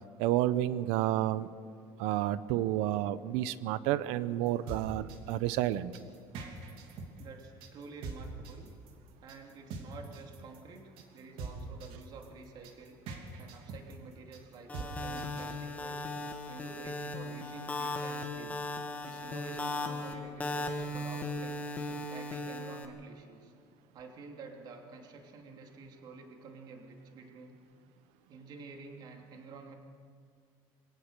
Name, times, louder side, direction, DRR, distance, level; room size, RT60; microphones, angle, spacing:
voice 1, 0.2-1.5 2.0-5.9, right 13 dB, 90° right, 16 dB, 0.7 m, -30 dB
sound 1, 4.5-15.5, right 4 dB, 65° right, 3.0 m, -43 dB
voice 2, 7.2-8.7 9.2-13.0 13.4-16.1 16.5-18.6 19.0-21.6 22.1-23.5 23.9-27.6 28.3-29.7, right 4 dB, 45° right, 2 dB, 3.0 m, -49 dB
sound 2, 14.7-22.9, left 2 dB, 15° left, 1.7 m, -37 dB
22.5 x 18.0 x 6.7 m, 2.2 s
cardioid pair, 150°, 10 cm